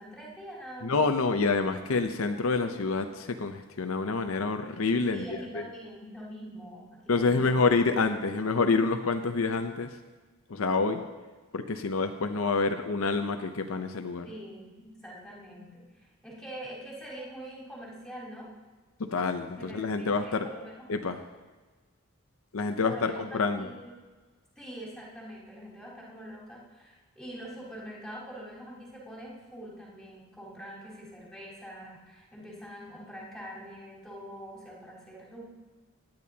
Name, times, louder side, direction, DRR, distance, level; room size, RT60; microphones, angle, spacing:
voice 1, 0.0-1.0 5.1-7.7 14.2-18.5 19.6-20.9 22.8-23.9 24.6-35.4, equal, 5° left, -8 dB, 4.0 m, -44 dB
voice 2, 0.8-5.2 5.5-5.6 7.1-9.9 10.5-11.0 11.5-14.3 19.0-20.5 20.9-21.2 22.5-23.7, left 4 dB, 75° left, 7 dB, 0.7 m, -27 dB
18.0 x 10.5 x 2.8 m, 1.3 s
head